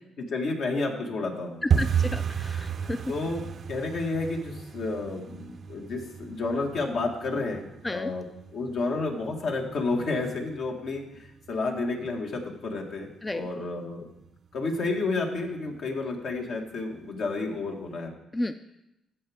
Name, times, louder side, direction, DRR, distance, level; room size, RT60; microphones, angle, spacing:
voice 1, 0.2-1.6 3.1-14.0 14.5-18.1, left 3 dB, 70° left, 1 dB, 1.7 m, -31 dB
voice 2, 1.6-3.0 7.8-8.1 13.2-13.5 18.3-18.5, left 1 dB, 20° left, 10 dB, 0.4 m, -32 dB
sound 1, 1.7-12.4 12.7-13.4 13.6-13.9 14.2-14.6 14.9-15.0 15.5-16.0 16.3-16.4 16.9-17.0, right 7 dB, 50° right, 0.5 m, -33 dB
13.0 x 7.4 x 3.5 m, 0.87 s
cardioid pair, 90°, 0 cm